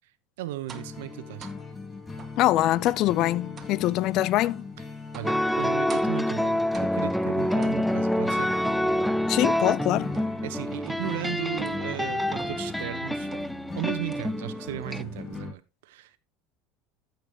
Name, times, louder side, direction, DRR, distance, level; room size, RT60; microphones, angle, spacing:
voice 1, 0.4-1.5 5.1-8.6 10.4-13.3 13.7-16.2, right 14 dB, 75° right, 1.0 m, -36 dB
sound 1, 0.7-15.5, left 4 dB, 25° left, 2.5 m, -40 dB
sound 2, 0.7-1.0 1.4-1.6 2.2-2.4 2.9-3.1 3.6-3.8 4.4-4.7 5.1-5.4 5.9-6.3 6.7-7.1 7.6-8.1 8.6-9.7 10.1-10.5 10.9-11.2 11.6-11.9 12.4-12.7 13.3-13.6 14.1-14.6 14.9-15.4, right 6 dB, 30° right, 1.8 m, -45 dB
voice 2, 2.4-4.7 9.3-10.2, left 15 dB, 55° left, 0.5 m, -24 dB
sound 3, 5.2-15.0, left 1 dB, ahead, 0.6 m, -27 dB
14.0 x 7.1 x 3.0 m
hypercardioid pair, 80°, 0 cm